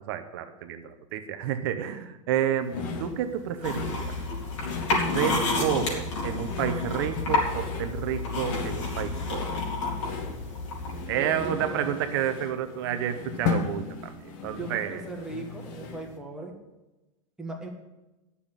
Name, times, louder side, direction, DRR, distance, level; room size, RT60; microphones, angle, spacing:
voice 1, 0.1-4.1 5.1-9.6 11.1-15.0, right 10 dB, 45° right, 8 dB, 0.9 m, -30 dB
sound 1, 2.7-16.2, left 5 dB, 40° left, 1.4 m, -37 dB
sound 2, 3.6-11.1, left 3 dB, 65° left, 4.3 m, -30 dB
voice 2, 11.2-11.9 14.5-16.6 17.4-17.7, right 3 dB, 5° right, -1 dB, 1.4 m, -38 dB
10.5 x 7.1 x 8.9 m, 1.0 s
supercardioid pair, 175°, 17 cm